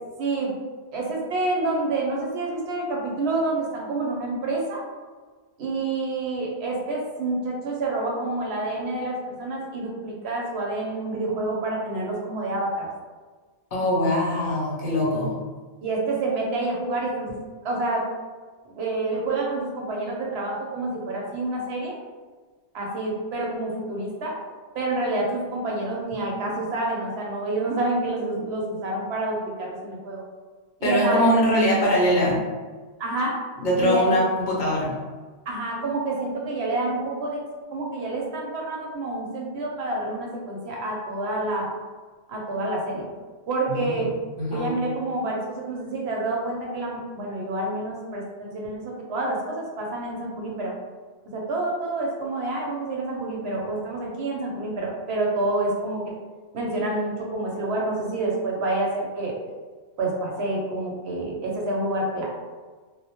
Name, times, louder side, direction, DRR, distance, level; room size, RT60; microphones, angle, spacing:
voice 1, 0.2-0.5 0.9-4.8 5.6-12.9 15.8-17.4 17.6-18.1 18.7-21.9 22.7-24.4 24.7-30.2 30.8-31.3 33.0-33.4 33.8-34.1 35.5-37.4 37.7-41.7 42.3-43.1 43.5-44.1 44.5-50.7 51.3-56.0 56.5-59.4 60.0-62.3, right 2 dB, 75° right, -2 dB, 0.8 m, -28 dB
voice 2, 13.7-15.4 30.8-32.5 33.6-35.0 43.7-43.9 44.4-44.7, equal, 50° left, -5 dB, 0.7 m, -22 dB
2.1 x 2.1 x 2.8 m, 1.4 s
omnidirectional pair, 1.1 m